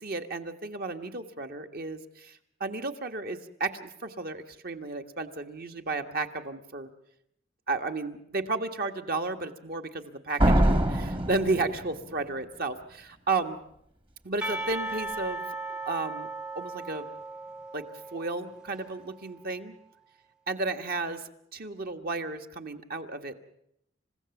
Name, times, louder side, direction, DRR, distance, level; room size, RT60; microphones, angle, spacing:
voice 1, 0.0-6.9 7.7-13.6 14.2-15.4 15.8-16.3 16.5-17.1 17.7-17.8 18.1-19.7 20.5-21.2 21.5-23.3, right 3 dB, 50° right, 6 dB, 1.6 m, -33 dB
Slam, 10.4-12.3, right 1 dB, 25° right, 1.3 m, -24 dB
Percussion, 14.4-19.3, right 2 dB, 5° right, 0.8 m, -37 dB
29.0 x 16.0 x 7.2 m, 0.74 s
head